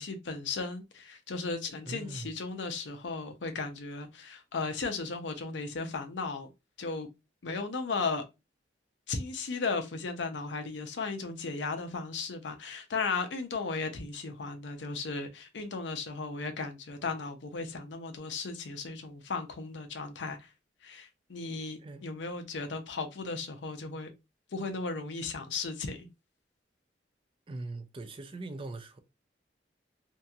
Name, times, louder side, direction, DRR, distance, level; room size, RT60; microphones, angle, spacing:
voice 1, 0.0-6.5 6.8-7.1 7.4-8.2 9.1-20.5 20.8-24.1 24.5-26.1, left 4 dB, 85° left, 0.6 m, -36 dB
voice 2, 1.9-2.3 21.8-22.1 27.5-29.0, right 2 dB, 30° right, 0.4 m, -41 dB
2.8 x 2.6 x 2.3 m
head